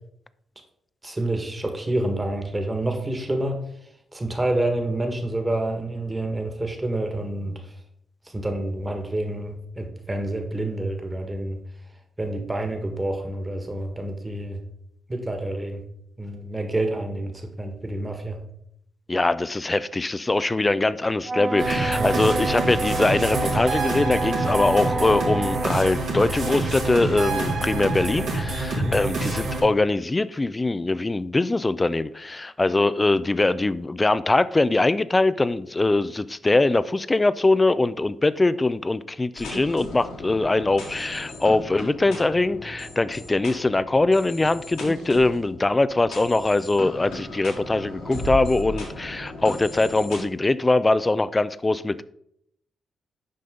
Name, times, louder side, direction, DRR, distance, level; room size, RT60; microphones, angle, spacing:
voice 1, 1.0-3.6 4.1-7.7 8.3-11.6 12.2-14.6 15.1-15.8 16.2-18.4 21.9-22.1 28.7-29.0, right 1 dB, 20° right, 1.6 m, -28 dB
voice 2, 19.1-52.0, left 2 dB, 25° left, 0.4 m, -22 dB
Wind instrument woodwind instrument, 21.2-25.8, right 3 dB, 45° right, 0.4 m, -28 dB
sound 1, 21.6-29.6, right 2 dB, 80° right, 2.1 m, -27 dB
sound 2, 39.4-50.2, left 1 dB, 90° left, 2.5 m, -36 dB
7.7 x 5.4 x 3.8 m
supercardioid pair, 50°, 0 cm